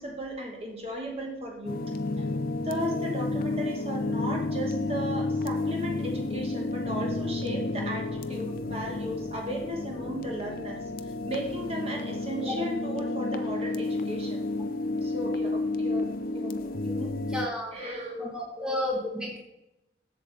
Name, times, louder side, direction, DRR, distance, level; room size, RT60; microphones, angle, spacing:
voice 1, 0.0-1.9 2.6-14.4 15.0-16.1 16.3-16.6 16.8-17.2 17.7-18.3 18.6-19.1, equal, 30° right, 0 dB, 1.2 m, -35 dB
sound 1, 1.7-17.5, left 2 dB, 50° left, 0.4 m, -31 dB
voice 2, 17.3-17.7 18.2-19.4, left 1 dB, 5° right, -1 dB, 1.2 m, -32 dB
7.6 x 7.0 x 3.3 m, 0.91 s
head